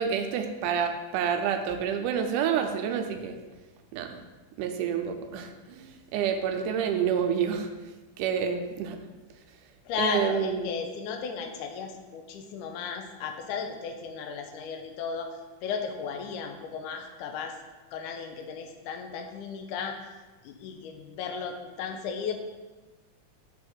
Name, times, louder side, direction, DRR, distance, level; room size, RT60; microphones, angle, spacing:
voice 1, 0.0-3.4 3.9-4.2 4.6-7.7 8.2-9.0 10.0-10.7, right 7 dB, 85° right, 6 dB, 2.2 m, -28 dB
voice 2, 9.9-17.6 17.9-20.0 20.4-22.3, left 6 dB, 80° left, 4 dB, 2.2 m, -35 dB
7.1 x 3.5 x 6.1 m, 1.2 s
omnidirectional pair, 3.6 m